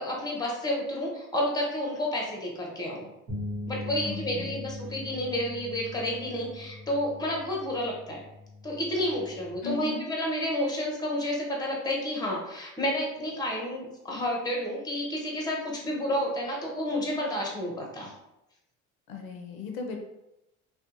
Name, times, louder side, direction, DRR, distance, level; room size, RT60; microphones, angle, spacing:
voice 1, 0.0-3.1 3.7-8.2 8.6-18.1, left 1 dB, 10° left, -1 dB, 0.8 m, -30 dB
sound 1, 3.3-9.5, left 2 dB, 60° right, 1.3 m, -40 dB
voice 2, 4.0-4.6 9.6-10.0 19.1-20.0, left 4 dB, 85° left, 2 dB, 0.5 m, -37 dB
2.6 x 2.2 x 2.5 m, 0.89 s
hypercardioid pair, 60°, 40 cm